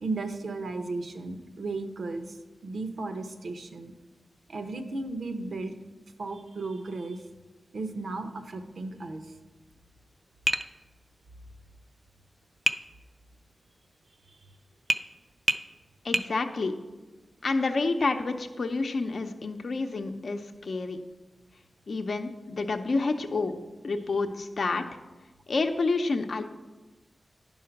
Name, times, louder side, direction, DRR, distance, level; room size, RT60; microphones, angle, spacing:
voice 1, 0.0-2.3 2.6-3.9 4.5-5.7 6.2-7.2 7.7-9.2, right 3 dB, 75° right, 7 dB, 0.8 m, -35 dB
Tap, 10.5-10.7 12.7-12.8 14.9-15.1 15.5-15.7 16.1-16.3, equal, 15° right, 0.4 m, -26 dB
voice 2, 16.0-16.7 17.4-21.0 21.9-23.5 23.8-24.8 25.5-26.4, left 3 dB, 65° left, 6 dB, 0.6 m, -29 dB
10.5 x 5.6 x 5.8 m, 1.2 s
wide cardioid pair, 85°, 0 cm